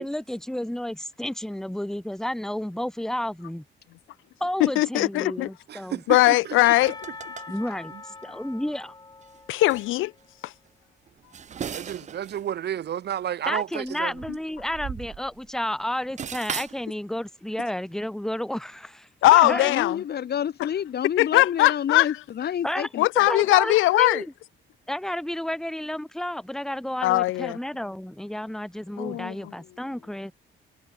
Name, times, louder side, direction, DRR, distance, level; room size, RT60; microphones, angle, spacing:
voice 1, 0.0-3.6 4.4-6.0 7.5-7.9 8.2-8.9 13.5-19.7 22.6-22.9 23.3-24.3 24.9-30.3, left 1 dB, ahead, 0.9 m, -31 dB
voice 2, 4.6-5.5 6.1-6.9 9.5-10.1 10.4-10.5 19.2-20.0 21.2-22.1 23.0-24.2 27.0-27.6 29.0-29.3, left 18 dB, 80° left, 0.4 m, -20 dB
voice 3, 5.7-6.6 7.9-8.0 11.5-14.1 29.1-29.2, right 10 dB, 55° right, 0.9 m, -32 dB
Percussion / Church bell, 6.6-10.3, left 3 dB, 20° left, 1.6 m, -43 dB
sound 1, 6.9-7.5 8.2-8.3 9.2-9.4 9.7-9.9 11.1-12.5 12.7-12.8 13.9-15.6 15.8-16.8, right 8 dB, 35° right, 0.6 m, -37 dB
voice 4, 19.5-23.5, left 9 dB, 55° left, 1.3 m, -29 dB
cardioid pair, 90°, 20 cm